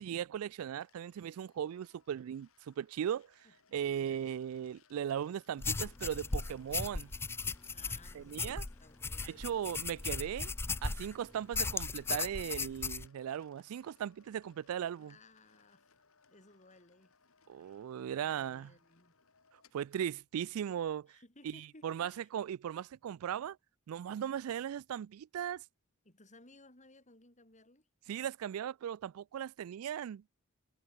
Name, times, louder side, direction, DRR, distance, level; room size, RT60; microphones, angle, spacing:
voice 1, 0.0-3.4 3.7-7.1 8.1-8.6 9.2-10.5 10.8-15.1 17.5-18.7 19.7-21.2 21.4-21.5 21.8-23.6 23.9-25.6 28.1-30.2, right 9 dB, 80° right, 0.3 m, -38 dB
sound 1, 0.8-20.3, left 5 dB, 70° left, 3.5 m, -68 dB
voice 2, 3.4-4.3 7.7-10.4 14.9-15.9 16.3-17.2 17.6-17.9 18.2-19.2 21.1-22.3 24.3-24.4 26.0-27.9, left 2 dB, 35° left, 7.8 m, -61 dB
sound 2, 5.6-11.1 11.5-13.1, left 4 dB, 10° left, 0.3 m, -37 dB
head